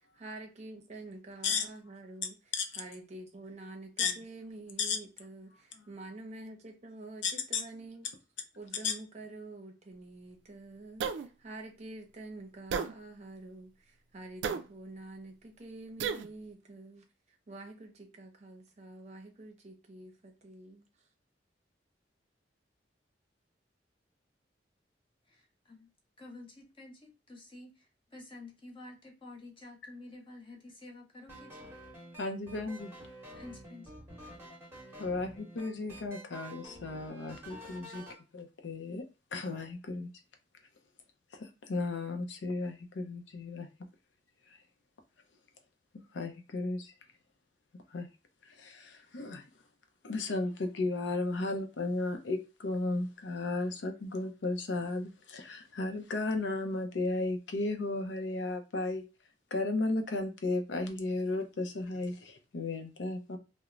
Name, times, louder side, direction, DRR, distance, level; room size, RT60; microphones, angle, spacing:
voice 1, 0.1-8.1 8.6-17.0 17.5-20.9, right 2 dB, 40° right, 0.7 m, -47 dB
voice 2, 7.2-7.6 8.8-8.9 32.2-32.9 35.0-38.0 38.3-39.1 39.3-40.1 41.3-43.7 46.1-46.9 47.9-48.1 48.6-49.4 50.0-59.1 59.5-63.4, left 3 dB, 80° left, 0.5 m, -34 dB
sound 1, 11.0-11.3 12.7-12.9 14.4-14.6 16.0-16.3, right 6 dB, 80° right, 0.3 m, -32 dB
voice 3, 26.2-27.7 28.1-31.7 33.3-33.9, left 2 dB, 30° left, 0.8 m, -50 dB
sound 2, 31.3-38.2, equal, 15° right, 0.9 m, -49 dB
3.0 x 2.0 x 2.4 m
head